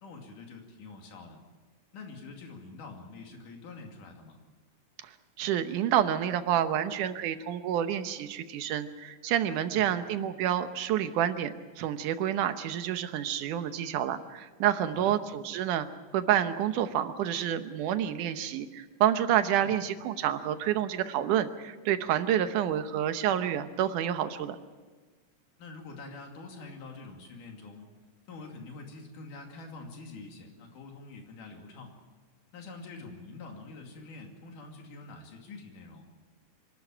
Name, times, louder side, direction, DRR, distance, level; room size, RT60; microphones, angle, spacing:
voice 1, 0.0-1.4 1.9-4.4 9.7-9.9 14.9-15.2 19.6-19.8 25.6-27.9 28.3-31.9 32.5-36.1, left 3 dB, 90° left, 2 dB, 4.1 m, -46 dB
voice 2, 5.4-15.9 16.1-24.6, right 10 dB, 85° right, 10 dB, 2.5 m, -28 dB
26.0 x 12.5 x 8.9 m, 1.4 s
omnidirectional pair, 3.5 m